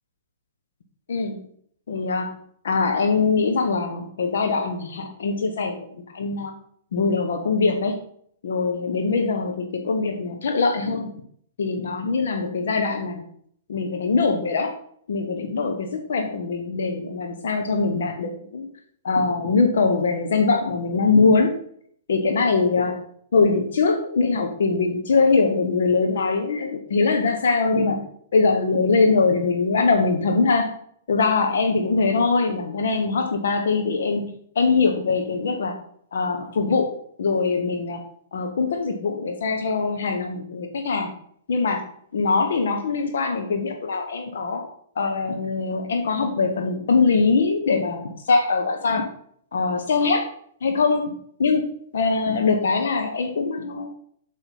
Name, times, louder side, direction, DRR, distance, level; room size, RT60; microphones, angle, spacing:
voice 1, 1.1-1.4 1.9-2.3 2.6-5.9 6.1-6.5 6.9-8.0 8.4-11.1 11.6-13.2 13.7-14.7 15.1-18.7 19.0-21.5 22.1-23.0 23.3-28.0 28.3-30.7 31.1-34.3 34.5-35.8 36.1-36.9 37.2-38.0 38.3-41.1 41.5-44.7 45.0-49.0 49.5-50.3 50.6-51.1 51.4-53.9, left 4 dB, 60° left, 5 dB, 1.2 m, -22 dB
8.1 x 5.7 x 5.5 m, 0.63 s
figure-of-eight pair, 110°, 0 cm